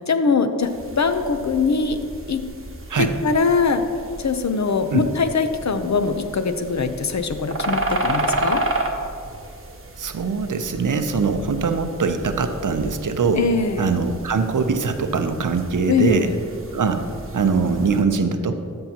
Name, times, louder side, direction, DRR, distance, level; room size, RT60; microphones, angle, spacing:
voice 1, 0.0-2.0 2.3-2.4 3.0-3.8 4.2-8.6 13.3-13.9 15.9-16.3, left 4 dB, 55° left, 8 dB, 0.6 m, -22 dB
sound 1, 0.6-18.0, right 2 dB, 40° right, 1.0 m, -32 dB
voice 2, 10.0-13.4 13.8-16.3 16.7-17.1 17.3-18.6, right 5 dB, 65° right, 8 dB, 0.6 m, -22 dB
13.0 x 5.5 x 2.9 m, 2.3 s
cardioid pair, 45°, 33 cm